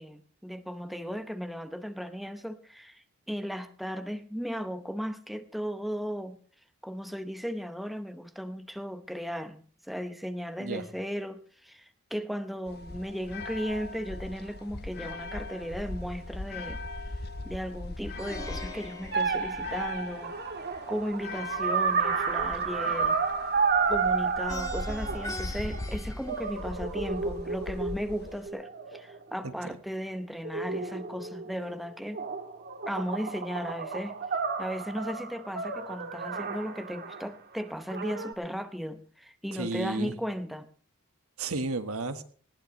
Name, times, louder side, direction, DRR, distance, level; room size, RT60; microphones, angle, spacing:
voice 1, 0.0-6.4 6.8-16.8 17.4-20.3 20.9-23.2 23.9-32.2 32.9-34.2 34.6-40.7, equal, ahead, 0.8 m, -36 dB
sound 1, 12.7-28.5, left 2 dB, 50° left, 1.1 m, -40 dB
Plucked string instrument, 18.2-20.3 24.5-27.1, left 2 dB, 15° left, 1.6 m, -43 dB
sound 2, 19.1-25.9 26.3-29.6 30.4-31.7 32.1-37.3 37.9-38.3, right 5 dB, 50° right, 1.6 m, -31 dB
voice 2, 39.5-40.2 41.4-42.2, right 3 dB, 80° right, 1.5 m, -33 dB
19.5 x 17.0 x 3.2 m
head